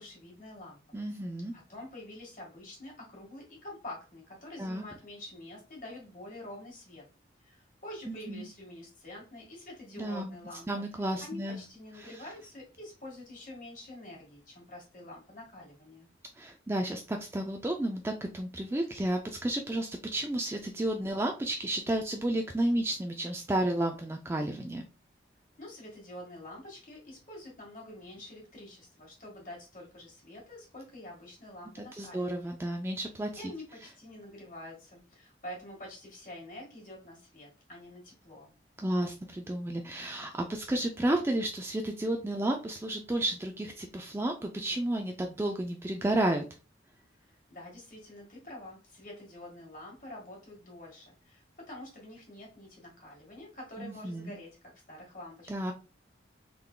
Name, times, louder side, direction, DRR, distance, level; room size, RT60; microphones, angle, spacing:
voice 1, 0.0-1.0 1.5-7.1 7.4-10.8 11.2-16.1 25.6-32.6 33.4-38.5 47.5-55.5, left 1 dB, 45° left, -2 dB, 1.7 m, -47 dB
voice 2, 0.9-1.5 4.6-4.8 8.1-8.5 10.0-10.4 10.7-11.6 16.4-24.8 32.0-33.4 38.8-46.4 53.8-54.3 55.5-55.7, right 1 dB, 15° right, 3 dB, 0.3 m, -32 dB
3.7 x 3.4 x 2.2 m, 0.32 s
head